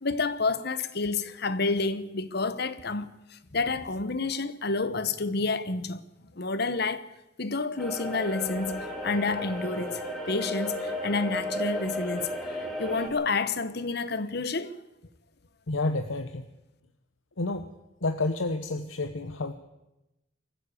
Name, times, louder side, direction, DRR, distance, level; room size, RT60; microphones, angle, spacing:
voice 1, 0.0-6.0 6.4-7.0 7.4-14.8, left 3 dB, 55° left, 1.1 m, -29 dB
sound 1, 7.8-13.1, equal, ahead, 4.0 m, -34 dB
voice 2, 15.7-16.5 17.4-17.7 18.0-19.5, left 2 dB, 80° left, 1.0 m, -29 dB
22.5 x 15.0 x 8.4 m
head